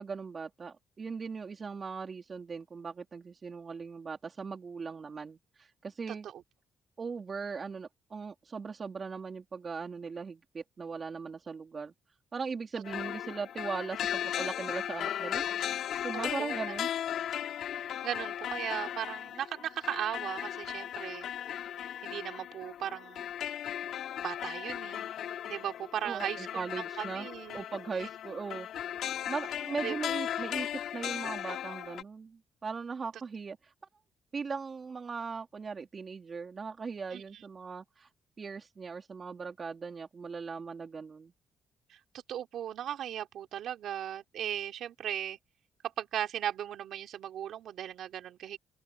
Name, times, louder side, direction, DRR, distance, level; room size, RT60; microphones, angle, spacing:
voice 1, 0.0-5.4 5.8-6.3 7.0-11.9 12.3-15.4 16.0-16.9 26.0-27.3 27.5-28.7 29.3-33.6 34.3-38.1 38.4-41.3, right 5 dB, 40° right, 4.2 m, -39 dB
voice 2, 6.1-6.4 16.1-16.6 17.6-21.3 22.0-23.2 24.2-25.1 25.4-26.7 27.0-27.6 27.9-28.1 29.8-30.0 37.1-37.4 41.9-42.0 42.3-45.4 46.0-48.6, right 10 dB, 75° right, 3.7 m, -37 dB
sound 1, 12.8-32.0, left 10 dB, 75° left, 4.2 m, -37 dB
open air
cardioid pair, 90°, 0 cm